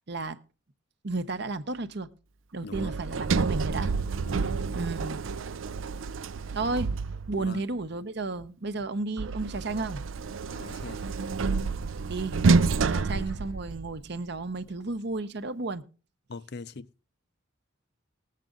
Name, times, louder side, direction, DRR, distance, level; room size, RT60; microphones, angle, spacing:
voice 1, 0.1-0.4 1.0-2.1 2.5-3.9 4.7-5.2 6.5-6.9 7.3-10.0 12.1-12.4 12.8-15.8, right 3 dB, 55° right, 0.8 m, -32 dB
voice 2, 2.6-2.9 4.3-4.5 6.6-6.8 7.4-7.6 10.6-11.0 12.9-13.3 16.3-16.9, left 4 dB, 55° left, 0.6 m, -42 dB
Sliding door, 2.7-7.6 9.2-14.1, right 4 dB, 75° right, 0.5 m, -29 dB
19.5 x 7.5 x 3.8 m
head